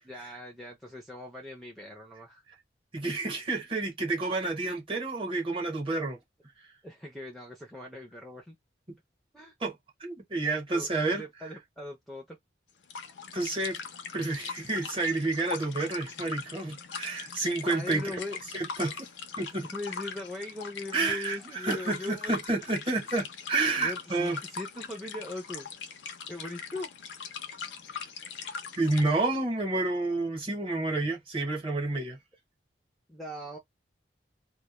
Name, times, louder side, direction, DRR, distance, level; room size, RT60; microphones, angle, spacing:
voice 1, 0.1-2.4 6.8-8.6 9.3-9.5 10.7-12.4 17.7-18.4 18.8-18.9 19.6-22.3 23.8-25.7 26.3-26.9 33.1-33.6, left 1 dB, ahead, 0.4 m, -40 dB
voice 2, 2.9-6.2 9.6-9.7 10.0-11.2 13.3-13.8 14.1-18.1 18.5-18.9 19.4-19.7 20.9-24.4 28.8-32.2, right 2 dB, 30° right, 0.8 m, -29 dB
sound 1, 12.8-29.1, left 6 dB, 90° left, 0.5 m, -41 dB
2.2 x 2.0 x 2.9 m
head